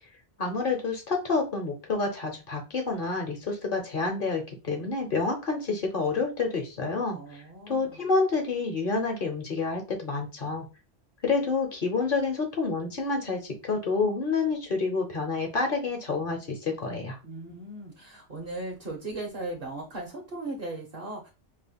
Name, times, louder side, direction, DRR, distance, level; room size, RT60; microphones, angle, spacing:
voice 1, 0.4-7.2 7.7-10.7 11.2-17.2, left 4 dB, 55° left, 4 dB, 1.1 m, -28 dB
voice 2, 7.1-8.0 17.2-21.3, right 2 dB, 55° right, 1 dB, 1.0 m, -38 dB
5.4 x 2.8 x 2.2 m, 0.29 s
omnidirectional pair, 1.1 m